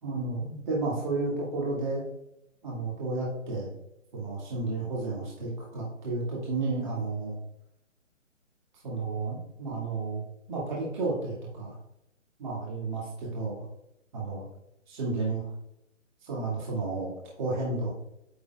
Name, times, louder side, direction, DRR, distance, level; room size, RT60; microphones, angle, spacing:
voice 1, 0.0-2.0 2.6-3.7 4.1-7.4 8.8-10.2 10.5-11.7 12.4-13.6 14.1-14.4 14.9-15.5 16.2-17.9, right 3 dB, 35° right, -5 dB, 2.4 m, -32 dB
9.5 x 6.6 x 2.4 m, 0.85 s
hypercardioid pair, 160°, 38 cm